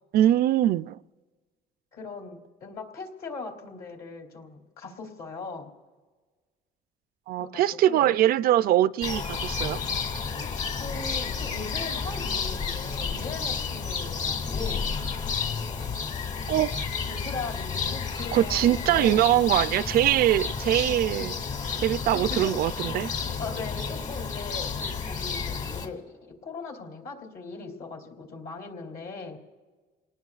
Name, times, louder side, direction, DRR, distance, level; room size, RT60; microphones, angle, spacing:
voice 1, 0.1-1.0 7.3-9.8 16.5-16.8 18.3-21.3 21.8-23.1, right 12 dB, 65° right, 0.4 m, -22 dB
voice 2, 1.9-5.7 7.4-8.1 10.4-14.9 17.0-19.3 21.1-21.2 22.1-22.6 23.4-29.4, left 4 dB, 65° left, 2.9 m, -39 dB
sound 1, 9.0-25.9, left 5 dB, 45° left, 2.3 m, -31 dB
29.0 x 19.0 x 2.4 m
cardioid pair, 110°, 17 cm